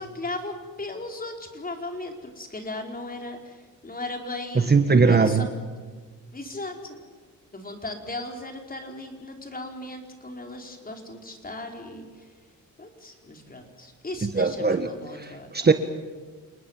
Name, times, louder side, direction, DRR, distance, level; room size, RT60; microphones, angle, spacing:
voice 1, 0.0-5.5 6.3-7.0 7.5-12.1 12.8-15.7, left 2 dB, 25° left, 3 dB, 4.7 m, -37 dB
voice 2, 4.5-5.5 14.2-15.7, right 4 dB, 30° right, 8 dB, 1.5 m, -21 dB
29.0 x 19.5 x 7.4 m, 1.5 s
cardioid pair, 100°, 34 cm